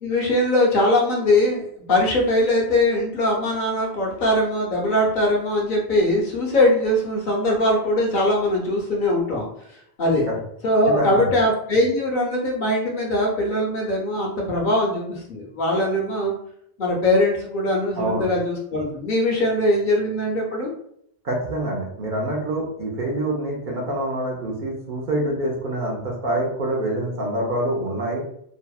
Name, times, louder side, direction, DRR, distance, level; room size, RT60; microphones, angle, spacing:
voice 1, 0.0-9.5 10.0-10.3 10.6-16.3 16.8-20.7, left 1 dB, 60° left, -1 dB, 0.7 m, -21 dB
voice 2, 10.9-11.3 18.0-18.3 21.2-28.2, right 1 dB, 60° right, -1 dB, 0.6 m, -26 dB
2.6 x 2.0 x 2.2 m, 0.69 s
omnidirectional pair, 1.1 m